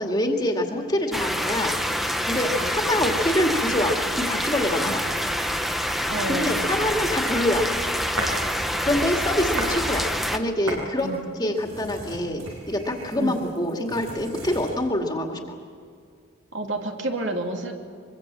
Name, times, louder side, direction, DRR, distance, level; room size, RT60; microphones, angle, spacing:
voice 1, 0.0-1.8 2.3-5.0 6.3-7.7 8.8-11.1 11.4-15.4, left 1 dB, 20° left, 2 dB, 2.2 m, -25 dB
sound 1, 1.1-10.4, equal, ahead, 0.9 m, -26 dB
voice 2, 6.1-6.8 8.7-8.9 11.0-11.2 13.2-13.4 16.5-17.7, right 1 dB, 65° right, 2 dB, 2.8 m, -30 dB
sound 2, 8.2-8.5 8.9-9.8 10.1-14.8, right 1 dB, 90° right, 7.6 m, -36 dB
24.0 x 24.0 x 7.5 m, 2.2 s
head